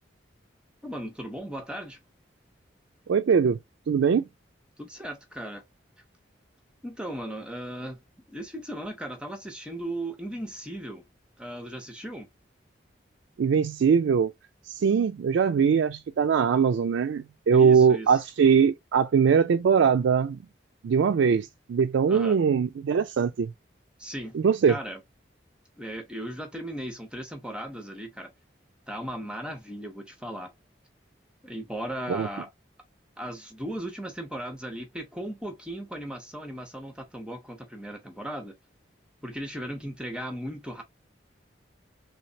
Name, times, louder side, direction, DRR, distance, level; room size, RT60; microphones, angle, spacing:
voice 1, 0.8-2.0 4.8-5.6 6.8-8.0 8.3-11.0 11.4-12.3 17.5-18.2 22.1-22.4 24.0-24.4 24.7-25.0 25.8-28.3 28.9-30.5 31.4-32.5 33.2-38.5 39.2-40.8, right 1 dB, 5° right, 0.6 m, -37 dB
voice 2, 3.1-3.6 3.9-4.3 13.4-14.3 14.7-20.4 20.8-23.5 24.3-24.7 32.1-32.3, right 6 dB, 80° right, 0.3 m, -22 dB
3.2 x 3.2 x 2.6 m
head